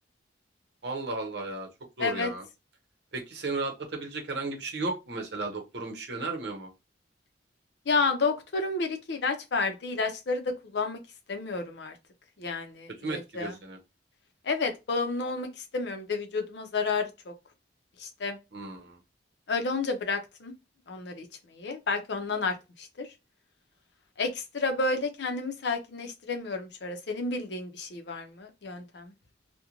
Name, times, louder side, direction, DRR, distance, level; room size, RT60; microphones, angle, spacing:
voice 1, 0.8-1.7 2.0-2.4 3.1-6.7 13.0-13.8 18.5-19.0, right 3 dB, 65° right, 0.8 m, -34 dB
voice 2, 2.0-2.3 7.9-11.0 11.3-11.9 12.4-13.5 14.4-17.3 18.0-18.4 19.5-20.5 20.9-21.3 21.5-23.1 24.2-29.1, left 3 dB, 65° left, 0.6 m, -31 dB
2.5 x 2.1 x 2.9 m
head